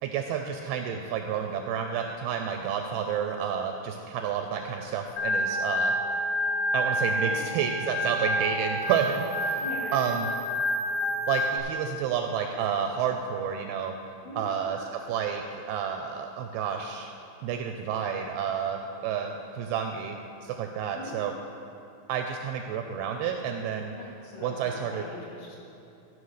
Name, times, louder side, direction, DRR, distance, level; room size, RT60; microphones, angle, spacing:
voice 1, 0.0-5.9 6.7-9.6 9.9-10.3 11.3-13.9 14.4-17.1 17.4-20.2 20.4-21.3 22.1-23.9 24.4-25.1, right 7 dB, 80° right, 4 dB, 2.3 m, -30 dB
Organ, 5.2-11.6, equal, 75° left, 2.3 m, -28 dB
voice 2, 9.6-10.0 14.2-14.4 20.9-21.1 23.9-25.6, left 1 dB, 55° left, -5 dB, 3.1 m, -41 dB
13.5 x 5.4 x 6.4 m, 2.7 s
omnidirectional pair, 4.9 m